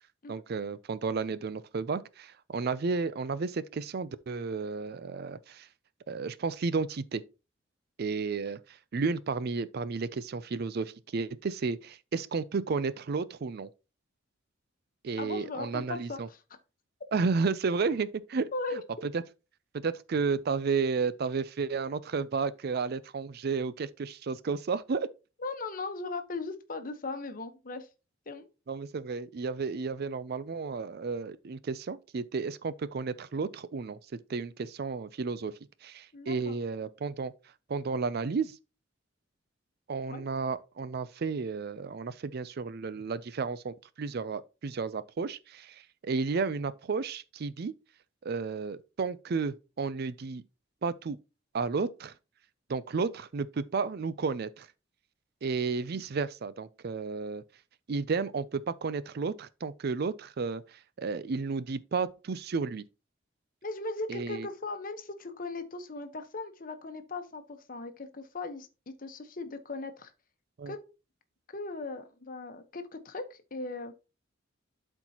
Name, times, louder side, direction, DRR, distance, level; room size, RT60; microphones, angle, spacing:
voice 1, 0.3-5.7 6.1-7.2 8.0-13.7 15.0-16.3 17.1-19.2 19.7-25.1 28.7-35.5 35.8-37.3 37.7-38.6 39.9-47.7 48.2-50.4 50.8-51.2 51.5-52.1 52.7-54.7 55.4-57.4 57.9-62.8 64.1-64.5 70.6-70.7, right 4 dB, 55° right, 0.4 m, -32 dB
voice 2, 15.2-16.4 18.5-19.1 25.4-27.9 28.3-28.5 36.1-36.6 40.1-40.2 63.6-70.1 70.7-70.8 71.5-73.9, left 3 dB, 45° left, 1.0 m, -38 dB
12.0 x 4.5 x 2.9 m
head